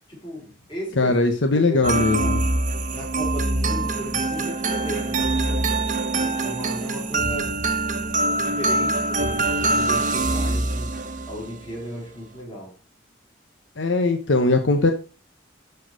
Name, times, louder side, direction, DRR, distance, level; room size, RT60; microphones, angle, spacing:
voice 1, 0.1-1.2 1.5-1.9 2.2-2.4 2.9-5.7 6.1-7.6 8.3-11.0 11.3-12.7, right 1 dB, 25° left, 5.3 m, -35 dB
voice 2, 1.0-2.4 13.8-14.9, left 2 dB, 75° left, 1.0 m, -20 dB
sound 1, 1.8-11.5, right 2 dB, 40° right, 1.1 m, -24 dB
12.5 x 4.7 x 4.8 m
head